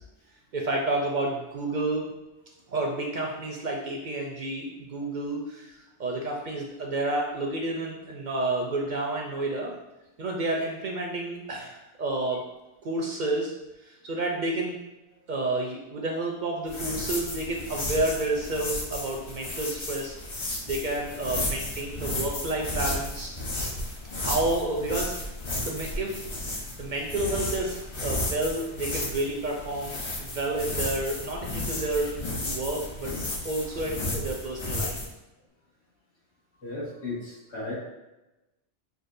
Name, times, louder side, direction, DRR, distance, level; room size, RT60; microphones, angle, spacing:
voice 1, 0.5-2.1 2.7-9.8 10.2-12.4 12.8-13.5 13.8-14.8 15.3-20.2 20.7-23.4 24.2-25.2 25.5-32.2 32.4-33.1 33.4-35.0, right 2 dB, 55° right, 0 dB, 0.5 m, -30 dB
sound 1, 16.7-35.1, left 1 dB, 40° left, 0.4 m, -33 dB
voice 2, 36.6-37.8, left 2 dB, 75° left, -8 dB, 1.8 m, -35 dB
6.1 x 2.3 x 2.5 m, 1.0 s
omnidirectional pair, 1.2 m